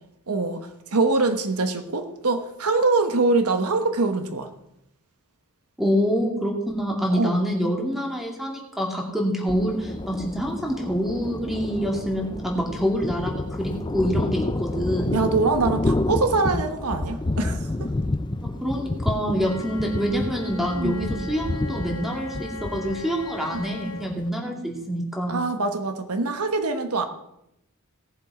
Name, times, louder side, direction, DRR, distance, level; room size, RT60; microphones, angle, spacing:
voice 1, 0.3-0.6 0.9-4.5 7.1-7.3 15.1-17.9 20.7-21.3 23.5-23.7 25.3-27.1, right 3 dB, 80° right, 7 dB, 1.1 m, -24 dB
voice 2, 5.8-15.2 18.6-25.4, equal, ahead, 0 dB, 2.3 m, -26 dB
Thunder, 9.5-24.3, left 2 dB, 20° left, 0.5 m, -29 dB
Wind instrument woodwind instrument, 19.3-24.1, left 3 dB, 80° left, 1.0 m, -39 dB
18.0 x 7.3 x 4.9 m, 0.81 s
head